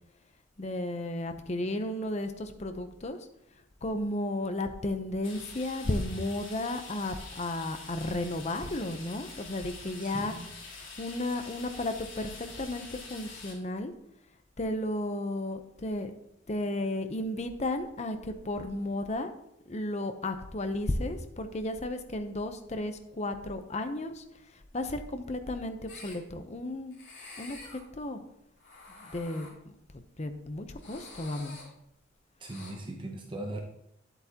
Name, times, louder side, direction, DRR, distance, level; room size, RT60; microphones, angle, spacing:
voice 1, 0.6-3.2 3.8-13.9 14.6-16.1 16.5-19.3 19.7-24.2 24.7-27.0 27.4-28.2 29.0-29.5 30.2-31.6, left 1 dB, 35° left, 8 dB, 0.7 m, -33 dB
sound 1, 5.2-13.5, left 3 dB, 85° left, 3.3 m, -46 dB
voice 2, 10.0-10.5 32.4-33.6, right 1 dB, 25° right, 2 dB, 0.7 m, -39 dB
sound 2, 25.9-26.1 26.9-27.8 28.6-29.5 30.8-31.6 32.4-32.7, left 3 dB, 65° left, 3.3 m, -48 dB
10.5 x 8.1 x 2.9 m, 0.79 s
head